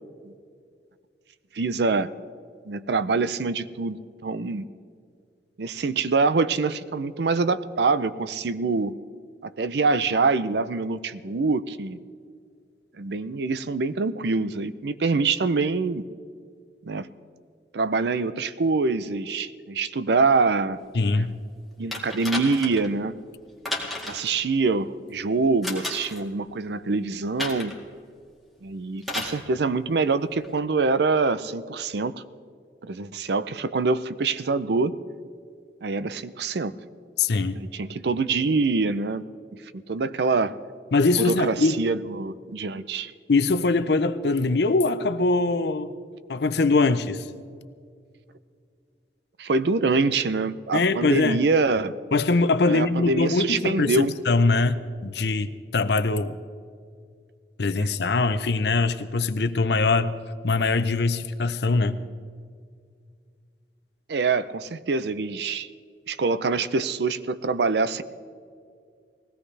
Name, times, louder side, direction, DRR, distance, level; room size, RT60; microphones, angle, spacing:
voice 1, 1.5-2.1 2.7-4.7 5.6-9.0 9.4-12.0 13.0-16.1 16.9-17.1 17.7-20.8 21.1-21.3 21.8-23.2 24.1-27.7 28.6-32.2 32.8-35.0 35.8-36.8 37.5-39.2 39.7-40.5 41.2-43.1 49.4-51.9 52.7-54.1 64.1-65.7 66.1-68.0, right 4 dB, 70° right, 14 dB, 0.5 m, -25 dB
voice 2, 20.9-21.3 37.2-37.6 40.9-41.8 43.3-45.9 46.3-47.2 50.7-51.4 52.1-56.4 57.6-60.1 60.4-62.0, left 3 dB, 65° left, 12 dB, 0.6 m, -22 dB
sound 1, 21.9-22.9 23.6-24.3 25.6-26.2 27.4-27.8 29.0-29.4 30.4-30.5, left 2 dB, ahead, 1.9 m, -32 dB
20.5 x 16.5 x 3.3 m, 2.2 s
head